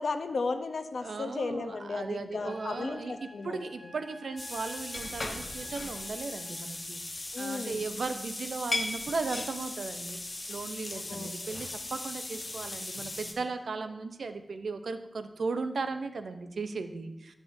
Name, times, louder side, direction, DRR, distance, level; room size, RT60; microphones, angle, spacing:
voice 1, 0.0-3.9 7.3-7.8 10.9-11.6, left 3 dB, 85° left, 8 dB, 0.6 m, -35 dB
voice 2, 1.0-10.2 10.5-17.3, right 4 dB, 90° right, 9 dB, 0.5 m, -36 dB
Trumpet, 2.4-6.7, left 1 dB, 5° right, 3.2 m, -52 dB
sound 1, 4.4-13.3, left 2 dB, 40° left, 1.1 m, -38 dB
12.0 x 7.2 x 2.6 m, 1.0 s
wide cardioid pair, 80°, 0 cm